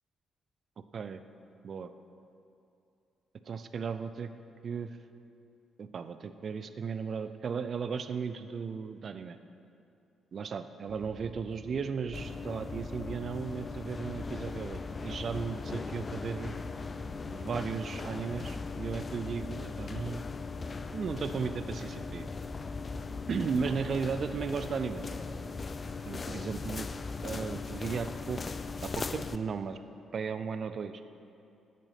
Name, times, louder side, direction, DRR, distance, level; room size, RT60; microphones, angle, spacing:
voice 1, 3.4-4.3 4.6-5.0 5.8-9.4 10.3-16.6 17.3-20.2 20.9-22.3 23.3-25.1 26.0-26.9 27.2-28.4 28.8-29.8 30.1-31.0, right 6 dB, 50° right, 11 dB, 0.5 m, -35 dB
sound 1, 10.9-26.9, right 1 dB, 35° right, 2.0 m, -53 dB
sound 2, 12.1-29.4, left 4 dB, 40° left, 0.4 m, -39 dB
8.8 x 7.5 x 5.8 m, 2.6 s
hypercardioid pair, 40°, 0 cm